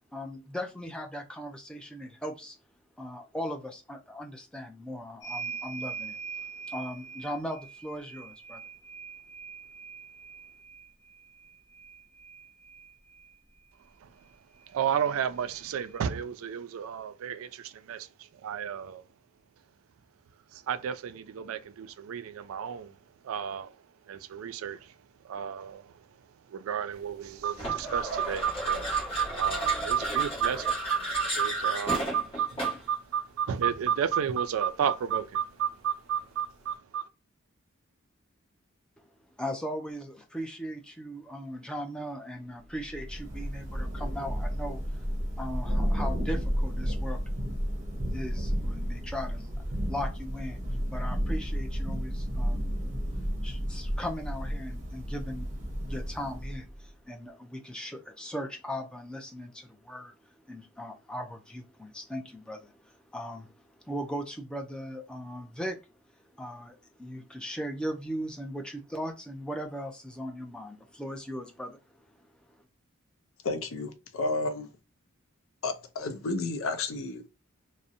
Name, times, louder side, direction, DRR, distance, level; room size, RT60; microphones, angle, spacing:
voice 1, 0.1-2.6 3.0-8.6 39.0-39.1 39.4-45.0 45.4-47.2 48.1-50.6 50.9-52.9 53.4-65.8 66.3-72.6, equal, 5° left, 0.4 m, -38 dB
sound 1, 5.2-13.3 14.6-14.7 15.0-16.1, right 5 dB, 60° left, 1.0 m, -43 dB
voice 2, 14.7-18.1 18.4-19.0 20.5-22.9 23.2-23.7 24.1-24.9 25.2-25.9 26.5-37.0, right 8 dB, 80° right, 0.3 m, -31 dB
sound 2, 27.6-32.9, equal, 30° left, 1.1 m, -34 dB
Thunder / Rain, 42.7-56.8, equal, 35° right, 0.7 m, -32 dB
voice 3, 73.4-74.7 75.6-77.3, left 3 dB, 80° left, 0.5 m, -32 dB
2.6 x 2.0 x 2.4 m
head